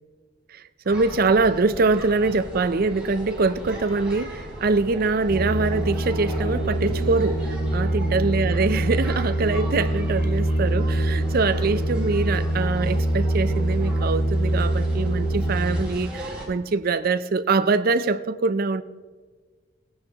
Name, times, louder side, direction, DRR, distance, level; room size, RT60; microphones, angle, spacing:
voice 1, 0.5-18.8, right 3 dB, 55° right, 0.5 m, -24 dB
sound 1, 0.8-16.5, equal, 5° right, 3.5 m, -38 dB
sound 2, 5.3-15.8, right 1 dB, 80° left, 2.0 m, -24 dB
18.5 x 11.0 x 2.9 m
head